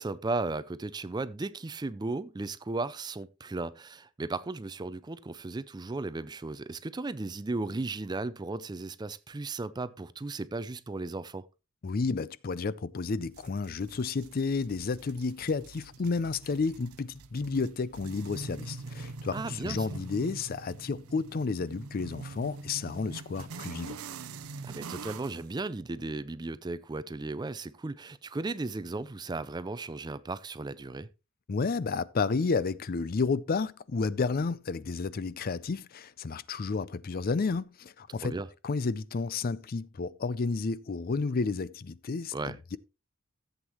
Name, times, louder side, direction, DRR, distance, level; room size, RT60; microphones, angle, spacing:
voice 1, 0.0-11.5 19.3-19.9 24.6-31.1 38.2-38.5 42.3-42.6, right 3 dB, 20° right, 0.4 m, -35 dB
voice 2, 11.8-24.0 31.5-38.4 38.6-42.8, left 4 dB, 45° left, 0.4 m, -31 dB
sound 1, 13.3-25.5, right 4 dB, 85° right, 0.6 m, -44 dB
14.5 x 8.0 x 3.0 m
head